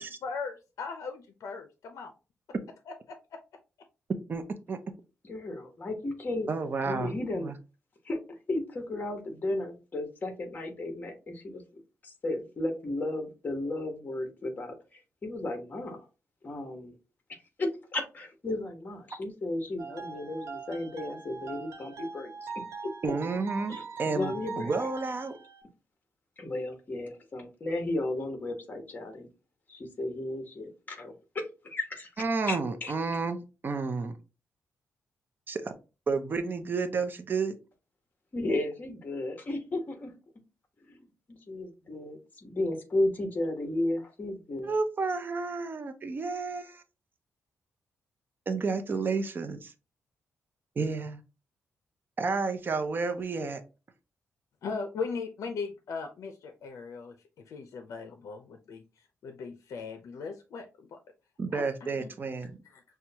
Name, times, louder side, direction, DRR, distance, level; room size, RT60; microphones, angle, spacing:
voice 1, 0.0-2.1 2.9-3.4 54.6-61.0 61.5-62.1 62.6-62.8, left 5 dB, 70° left, 6 dB, 0.5 m, -39 dB
voice 2, 5.2-6.5 6.8-7.5 8.0-8.2 8.5-11.6 12.0-16.1 16.4-16.9 17.3-22.5 23.7-24.7 26.4-29.3 29.7-32.1 32.5-32.9 38.3-40.1 40.8-44.8, left 2 dB, 30° left, 5 dB, 1.2 m, -34 dB
voice 3, 6.5-7.5 23.0-25.4 32.2-34.2 35.5-35.7 36.1-37.5 44.6-46.8 48.5-49.7 50.8-51.2 52.2-53.6 61.4-62.5, right 4 dB, 40° right, 8 dB, 0.6 m, -31 dB
sound 1, 19.8-25.6, right 5 dB, 70° right, 1.2 m, -41 dB
6.0 x 2.2 x 2.8 m, 0.30 s
wide cardioid pair, 130°, 6 cm